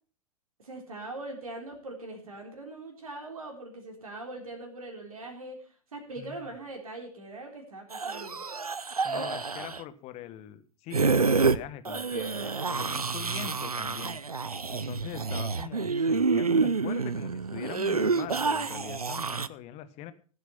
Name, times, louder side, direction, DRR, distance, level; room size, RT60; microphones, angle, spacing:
voice 1, 0.6-8.4, right 2 dB, 75° right, 2 dB, 3.7 m, -41 dB
voice 2, 6.2-6.5 9.0-14.2 14.7-20.1, left 12 dB, 35° left, 13 dB, 1.3 m, -42 dB
sound 1, 7.9-9.8 10.9-11.6 11.9-19.5, right 4 dB, 90° right, 0.6 m, -28 dB
15.5 x 8.1 x 5.7 m, 0.40 s
figure-of-eight pair, 100°, 18 cm